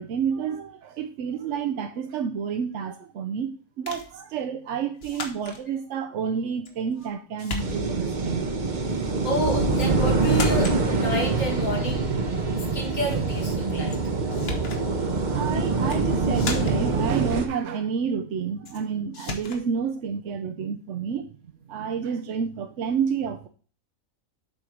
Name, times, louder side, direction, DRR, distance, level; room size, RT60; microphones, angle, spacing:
voice 1, 0.0-8.5 15.2-21.3 21.7-23.5, right 7 dB, 65° right, 0.9 m, -29 dB
sound 1, 3.9-4.1 5.0-5.6 6.7-7.1 7.4-8.1 9.7-9.9 10.2-10.8 13.9-14.0 14.3-14.8 15.7-16.0 16.3-16.9 18.7-18.8 19.1-19.6, left 4 dB, 50° left, 1.3 m, -35 dB
sound 2, 7.6-17.5, right 3 dB, 40° right, 0.9 m, -25 dB
voice 2, 9.2-12.1 12.7-14.0, equal, 70° left, 2.3 m, -29 dB
7.6 x 4.5 x 4.9 m
omnidirectional pair, 1.4 m